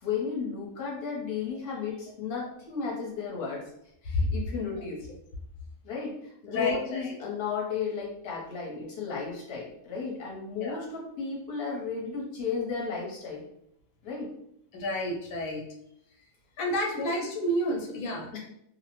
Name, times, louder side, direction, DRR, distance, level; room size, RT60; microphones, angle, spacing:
voice 1, 0.0-3.6 4.0-5.0 5.8-13.4 14.0-14.3 17.0-17.1 18.3-18.4, left 5 dB, 50° left, -2 dB, 0.9 m, -34 dB
voice 2, 6.5-7.1 10.6-10.8 14.7-15.6 16.6-18.3, left 1 dB, 90° left, 0 dB, 1.0 m, -30 dB
2.6 x 2.0 x 2.9 m, 0.74 s
omnidirectional pair, 1.4 m